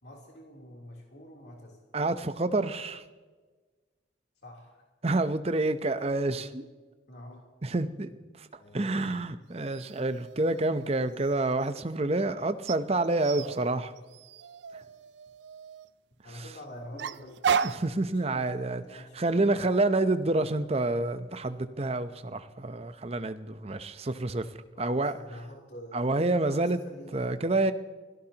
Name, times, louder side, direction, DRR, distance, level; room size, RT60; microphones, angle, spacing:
voice 1, 0.0-1.8 4.4-4.8 7.1-7.4 8.6-9.1 13.3-13.6 16.2-17.4 18.1-19.6 24.7-26.1 26.4-27.2, left 1 dB, 65° left, -2 dB, 3.3 m, -47 dB
voice 2, 1.9-3.0 5.0-6.6 7.6-8.1 8.4-8.5 8.7-13.9 14.7-14.8 16.4-16.5 17.6-18.8 19.2-24.5 24.8-25.2 25.9-26.8 27.1-27.7, right 2 dB, 35° right, 11 dB, 0.7 m, -28 dB
sound 1, 9.6-11.7 12.7-15.9 17.0-17.9, right 7 dB, 65° right, 0.5 m, -34 dB
28.0 x 17.5 x 2.9 m, 1.3 s
head